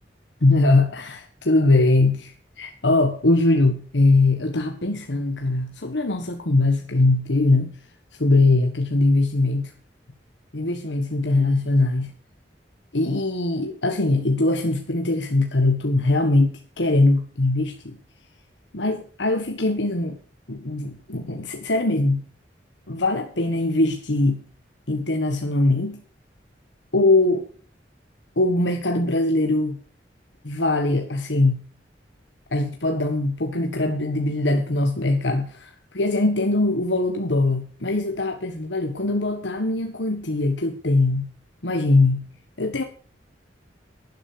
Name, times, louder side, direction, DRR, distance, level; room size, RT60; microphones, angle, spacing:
voice 1, 0.4-7.8 8.2-9.7 10.5-12.1 12.9-18.0 18.7-20.2 20.5-22.2 22.9-24.4 24.9-26.0 26.9-27.4 28.4-29.8 30.4-31.7 32.5-41.3 41.6-42.3 42.6-42.8, left 2 dB, 85° left, 1.6 m, -21 dB
11.5 x 11.5 x 6.8 m
head